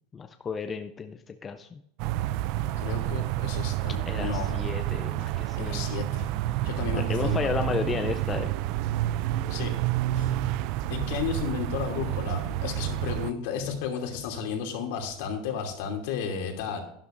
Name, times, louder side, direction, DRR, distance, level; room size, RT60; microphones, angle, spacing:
voice 1, 0.1-1.8 4.1-5.9 6.9-8.5, left 5 dB, 15° left, 7 dB, 0.5 m, -33 dB
sound 1, 2.0-13.3, right 14 dB, 50° right, 0.4 m, -29 dB
voice 2, 2.8-4.6 5.6-6.3 6.6-7.4 9.5-9.7 10.1-10.3 10.9-16.8, left 6 dB, 65° left, 2 dB, 2.8 m, -33 dB
12.0 x 11.5 x 2.6 m, 0.73 s
supercardioid pair, 170°, 0 cm